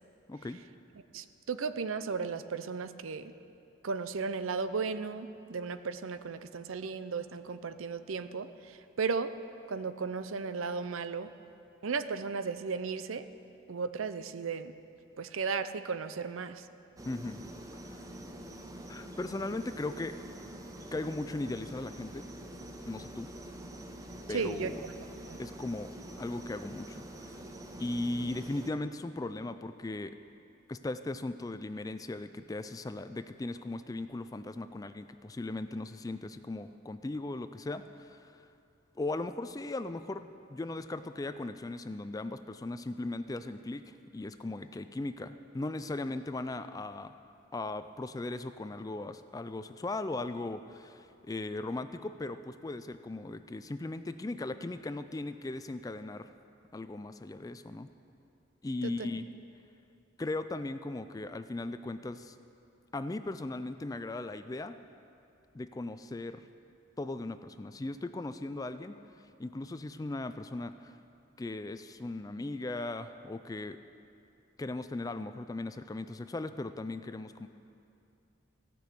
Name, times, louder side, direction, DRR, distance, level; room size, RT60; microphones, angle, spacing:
voice 1, 0.3-0.6 17.1-17.4 17.8-18.0 18.9-20.1 20.9-22.3 22.9-23.3 24.3-24.8 25.4-25.9 26.2-27.4 27.8-30.2 30.7-38.5 39.0-47.1 47.5-56.3 56.7-57.9 58.6-59.3 60.2-62.4 62.9-64.8 65.5-66.5 67.0-68.9 69.4-70.9 71.4-73.8 74.6-77.5, left 2 dB, 15° left, 11 dB, 0.3 m, -38 dB
voice 2, 1.1-3.3 3.8-9.3 9.7-11.3 11.8-13.2 13.7-14.7 15.2-16.7 24.3-24.7 25.3-25.4 58.8-59.1, right 5 dB, 80° right, 12 dB, 0.5 m, -35 dB
sound 1, 17.0-28.7, right 1 dB, 15° right, 0.7 m, -46 dB
16.0 x 6.2 x 8.4 m, 2.6 s
head